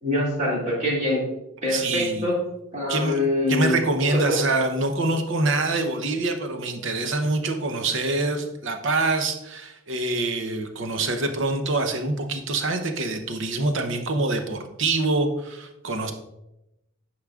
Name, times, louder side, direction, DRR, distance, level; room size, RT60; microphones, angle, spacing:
voice 1, 0.0-1.2 1.6-2.4 2.7-4.3, left 1 dB, 35° right, -5 dB, 2.4 m, -24 dB
voice 2, 1.7-2.3 2.9-3.2 3.5-16.1, right 2 dB, 65° right, 6 dB, 0.8 m, -25 dB
10.0 x 4.8 x 2.4 m, 0.90 s
head